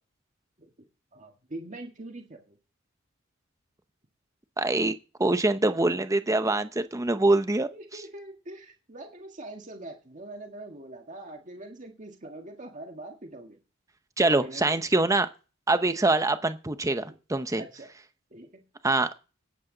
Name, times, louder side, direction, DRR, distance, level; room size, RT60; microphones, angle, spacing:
voice 1, 1.1-2.6 7.7-13.6 14.3-14.9 16.2-16.3 17.0-17.2 17.5-17.9 18.3-18.6, right 2 dB, 40° right, 1.7 m, -43 dB
voice 2, 4.6-4.9 5.2-7.7 14.2-15.3 15.7-17.6 18.8-19.1, right 2 dB, 15° right, 0.7 m, -24 dB
18.5 x 8.4 x 3.9 m
head